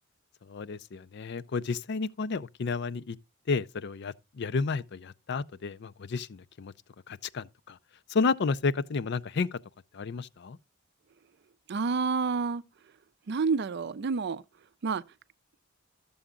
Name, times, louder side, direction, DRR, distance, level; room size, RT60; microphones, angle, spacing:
voice 1, 0.5-3.2 3.5-6.7 7.1-7.8 8.1-9.6 9.9-10.6, left 4 dB, 60° left, 0.5 m, -31 dB
voice 2, 11.7-12.6 13.3-14.4 14.8-15.0, right 4 dB, 55° right, 0.5 m, -28 dB
12.5 x 7.1 x 3.7 m
head